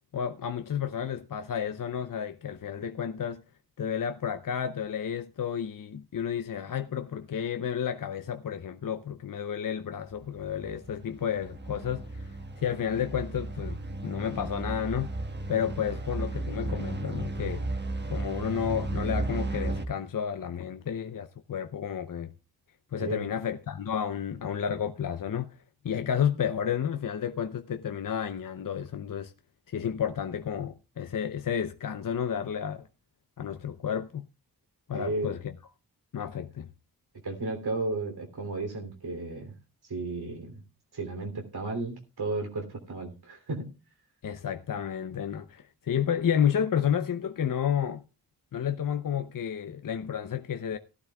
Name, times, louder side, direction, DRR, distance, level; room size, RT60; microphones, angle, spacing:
voice 1, 0.1-3.4 3.8-15.1 15.5-17.6 18.1-22.3 22.9-25.6 25.8-29.3 29.7-32.8 33.4-34.3 34.9-35.4 36.1-36.7 44.2-48.0 48.5-50.8, left 8 dB, 55° left, 0.7 m, -31 dB
sound 1, 10.2-19.8, right 2 dB, 25° right, 1.3 m, -34 dB
voice 2, 34.9-35.3 37.2-39.5 39.9-40.6 40.9-43.7, right 2 dB, 70° right, 3.1 m, -33 dB
17.5 x 12.0 x 2.3 m
cardioid pair, 60°, 39 cm